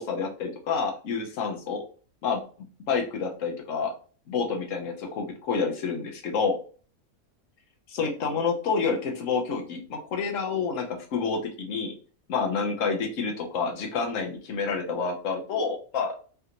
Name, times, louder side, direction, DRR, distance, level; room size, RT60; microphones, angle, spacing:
voice 1, 0.0-1.8 2.2-2.4 2.9-3.9 4.3-6.6 7.9-11.9 12.3-16.2, left 5 dB, 65° left, 2 dB, 1.1 m, -28 dB
3.3 x 2.5 x 2.8 m, 0.40 s
omnidirectional pair, 1.6 m